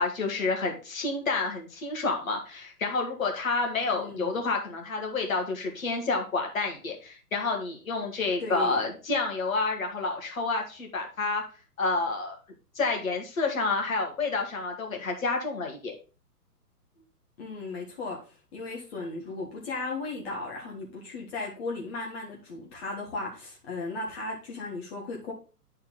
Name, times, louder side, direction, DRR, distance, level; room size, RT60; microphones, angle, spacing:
voice 1, 0.0-11.4 11.8-12.4 12.8-15.9, left 3 dB, 55° left, 2.0 m, -29 dB
voice 2, 3.9-4.5 8.4-8.9 17.4-25.3, left 3 dB, 40° left, 1.6 m, -36 dB
9.5 x 4.4 x 3.9 m
figure-of-eight pair, 120°, 47 cm